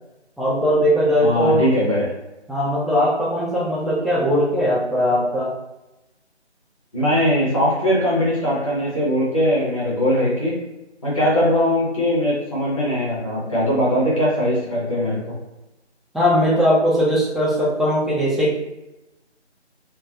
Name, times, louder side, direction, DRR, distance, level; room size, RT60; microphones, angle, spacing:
voice 1, 0.4-1.7 2.5-5.5 16.1-18.6, equal, ahead, -6 dB, 0.3 m, -19 dB
voice 2, 1.2-2.1 6.9-10.5 11.0-15.4, equal, 30° left, -7 dB, 0.8 m, -20 dB
3.1 x 2.1 x 2.2 m, 0.98 s
figure-of-eight pair, 160°, 35 cm